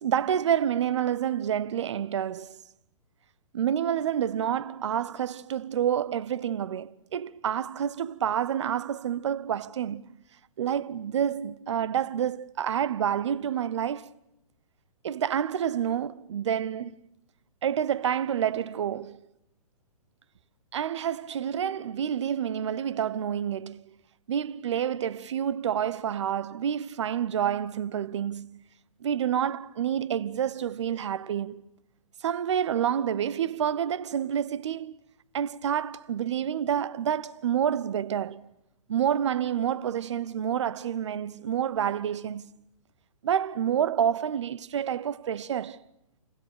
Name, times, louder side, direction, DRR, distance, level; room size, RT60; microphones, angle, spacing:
voice 1, 0.0-2.6 3.5-10.2 10.6-14.1 15.0-17.0 17.6-19.2 20.7-23.9 24.3-28.6 29.0-31.6 32.2-35.0 35.3-38.5 38.9-42.6 43.2-45.8, right 9 dB, 50° right, 1.1 m, -28 dB
29.0 x 29.0 x 6.8 m
figure-of-eight pair, 120°, 19 cm